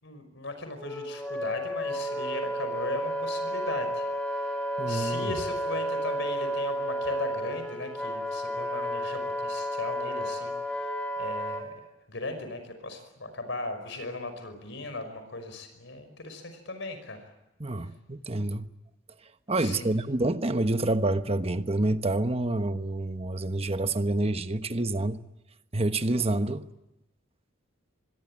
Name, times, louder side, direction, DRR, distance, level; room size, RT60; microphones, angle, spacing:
voice 1, 0.0-11.8 12.1-17.3 19.6-19.9, left 2 dB, 65° left, 5.3 m, -38 dB
Wind instrument woodwind instrument, 0.8-11.7, equal, 5° left, 3.2 m, -32 dB
voice 2, 4.8-5.4 17.6-18.6 19.5-25.2 25.7-26.6, right 2 dB, 30° right, 1.2 m, -28 dB
25.5 x 22.0 x 8.8 m
head